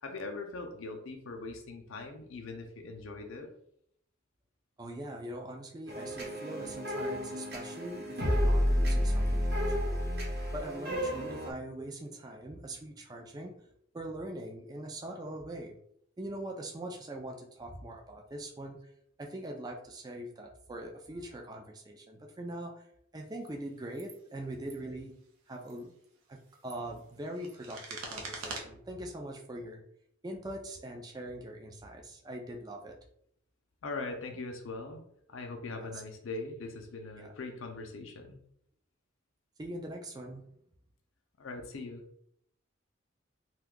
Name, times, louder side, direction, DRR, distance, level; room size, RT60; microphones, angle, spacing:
voice 1, 0.0-3.5 33.8-35.0 35.3-38.4 41.4-42.0, left 3 dB, 70° left, 4 dB, 0.5 m, -41 dB
voice 2, 4.8-10.0 10.5-13.7 13.9-15.8 16.2-18.8 19.2-22.9 23.1-25.1 25.5-25.9 26.3-29.8 30.2-33.0 35.8-36.0 37.2-37.3 39.6-40.4, right 1 dB, 20° right, 2 dB, 0.3 m, -42 dB
sound 1, 5.9-11.5, equal, 50° right, 0.9 m, -30 dB
sound 2, 23.3-23.5 23.9-24.2 24.5-24.8 25.5-25.8 26.4-28.6, right 3 dB, 90° right, 0.6 m, -44 dB
2.6 x 2.3 x 3.6 m, 0.70 s
head